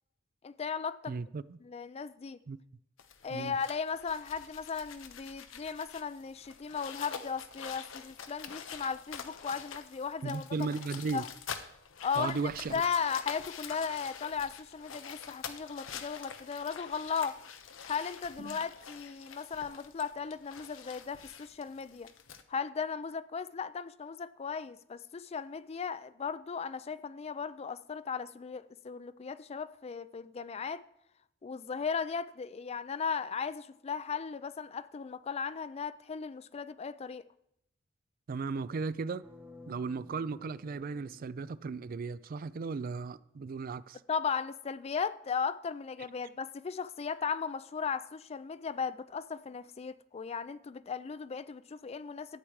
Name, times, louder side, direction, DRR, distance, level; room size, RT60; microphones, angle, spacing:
voice 1, 0.4-1.2 1.6-2.4 3.2-10.7 11.1-11.3 12.0-12.4 12.7-17.4 17.9-22.1 22.5-30.8 31.4-37.2 44.1-52.4, left 6 dB, 30° left, 0.4 m, -36 dB
voice 2, 1.1-1.6 2.5-2.6 3.3-3.5 10.2-11.2 12.2-12.8 18.4-18.6 38.3-39.2 39.7-44.0, right 4 dB, 50° right, 0.4 m, -36 dB
sound 1, 3.0-22.4, left 7 dB, 85° left, 0.8 m, -46 dB
sound 2, 39.2-42.2, left 2 dB, 10° right, 0.8 m, -54 dB
12.0 x 8.4 x 4.7 m
head